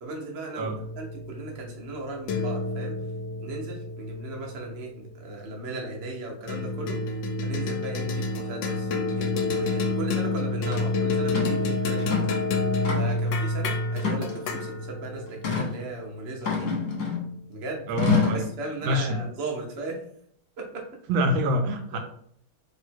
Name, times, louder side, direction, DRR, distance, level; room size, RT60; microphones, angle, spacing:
voice 1, 0.0-3.0 3.4-7.0 7.4-12.2 13.0-16.7 17.5-17.9 18.3-20.0 20.6-20.9 21.9-22.0, right 2 dB, 55° right, 0 dB, 0.7 m, -37 dB
sound 1, 0.6-5.3 6.5-17.0, left 3 dB, 75° left, 1.2 m, -29 dB
sound 2, 10.7-10.8 11.3-11.6 12.0-12.4 12.8-13.3 14.0-14.6 15.4-15.7 16.4-17.3 18.0-18.5, left 5 dB, 45° left, 1.2 m, -27 dB
voice 2, 17.9-18.5 18.8-19.2 21.1-22.0, equal, 75° right, 6 dB, 1.3 m, -25 dB
3.3 x 2.8 x 4.5 m, 0.66 s
omnidirectional pair, 2.3 m